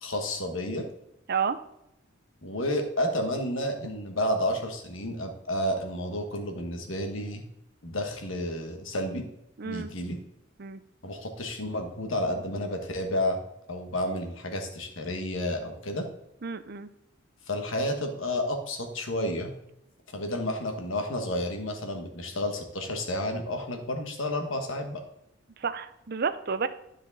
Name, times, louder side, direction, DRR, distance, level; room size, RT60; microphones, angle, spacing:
voice 1, 0.0-0.8 2.4-7.4 7.8-9.3 9.6-10.2 11.0-13.4 13.7-16.1 17.5-19.5 20.1-25.0, left 1 dB, 80° left, 5 dB, 1.4 m, -31 dB
voice 2, 9.6-9.9 10.6-10.8 16.4-16.9 25.6-26.7, right 6 dB, 50° right, 11 dB, 0.6 m, -30 dB
9.8 x 5.0 x 4.0 m, 0.82 s
head